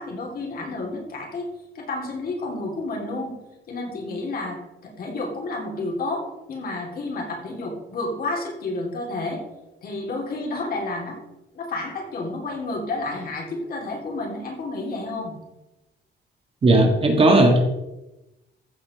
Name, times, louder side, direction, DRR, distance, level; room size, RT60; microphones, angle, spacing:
voice 1, 0.0-1.5 1.8-3.3 3.7-9.4 9.8-11.2 11.5-15.4, left 2 dB, 50° left, 0 dB, 3.7 m, -30 dB
voice 2, 16.6-17.6, right 2 dB, 30° right, 3 dB, 1.9 m, -16 dB
15.0 x 5.8 x 6.8 m, 0.97 s
cardioid pair, 180°, 20 cm